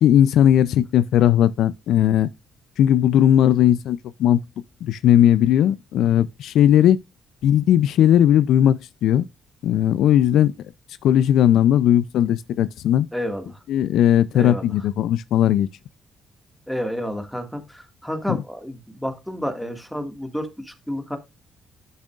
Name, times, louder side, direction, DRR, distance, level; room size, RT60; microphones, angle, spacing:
voice 1, 0.0-2.3 2.8-4.4 4.8-7.0 7.4-9.2 9.6-10.5 11.0-13.1 13.7-15.7 18.3-18.4, left 11 dB, 80° left, 0.4 m, -17 dB
voice 2, 13.1-13.6 14.3-14.7 16.7-21.2, equal, ahead, 1.8 m, -30 dB
10.0 x 6.4 x 2.4 m
cardioid pair, 90°, 0 cm